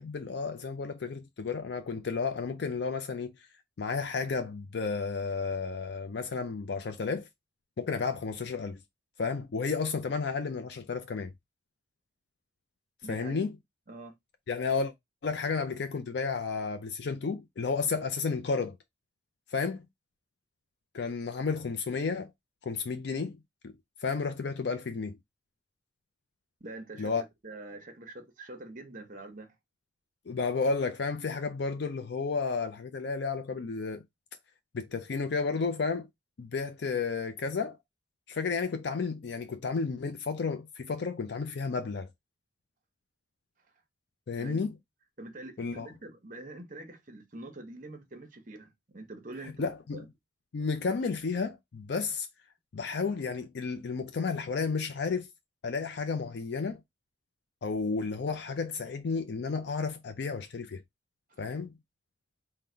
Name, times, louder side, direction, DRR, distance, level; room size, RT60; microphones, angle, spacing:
voice 1, 0.0-3.3 3.8-7.3 7.8-8.8 9.2-11.3 13.1-13.5 14.5-14.9 15.2-18.8 19.5-19.8 20.9-22.3 22.7-23.4 23.6-23.7 24.0-25.2 27.0-27.2 30.3-34.0 34.7-36.1 36.4-37.8 38.3-42.1 44.3-44.7 45.6-45.9 49.6-50.0 50.5-52.3 52.7-55.3 55.6-56.8 57.6-60.8 61.4-61.7, left 4 dB, 60° left, 0.4 m, -32 dB
voice 2, 13.0-13.5 13.9-14.1 26.6-29.5 44.4-44.6 45.2-50.1 61.3-61.4, right 2 dB, 40° right, 0.8 m, -45 dB
3.8 x 2.1 x 4.3 m
head